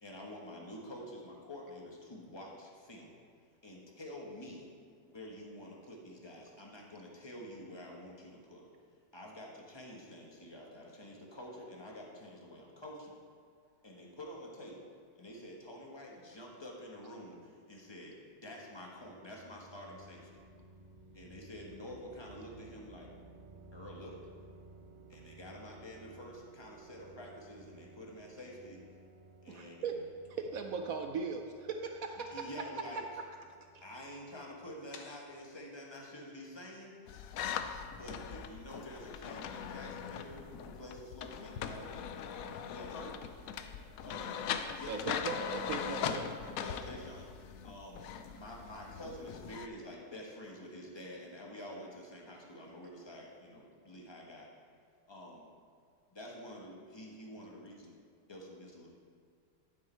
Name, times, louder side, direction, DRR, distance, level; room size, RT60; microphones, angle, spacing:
voice 1, 0.0-3.1 3.6-4.7 5.0-8.7 9.1-13.2 13.8-14.8 15.1-20.4 21.1-23.1 23.7-24.2 25.1-28.8 29.4-30.1 32.3-33.0 33.8-36.9 37.9-42.9 44.0-44.4 44.7-45.1 46.6-47.2 47.6-54.5 55.1-55.4 56.1-57.9 58.3-58.9, left 1 dB, 20° left, -1 dB, 1.0 m, -48 dB
sound 1, 18.4-35.2, right 3 dB, 45° right, 0.5 m, -57 dB
voice 2, 29.5-30.0 30.3-32.5 44.9-46.3, right 5 dB, 70° right, 5 dB, 0.8 m, -38 dB
voice 3, 34.9-35.6 42.9-43.3 44.0-44.3 44.6-44.8 46.9-47.1 58.3-58.4, left 2 dB, 55° left, 1 dB, 1.5 m, -52 dB
sound 2, 37.1-49.7, left 8 dB, 80° left, 0.7 m, -40 dB
11.5 x 6.1 x 4.4 m, 2.1 s
omnidirectional pair, 2.0 m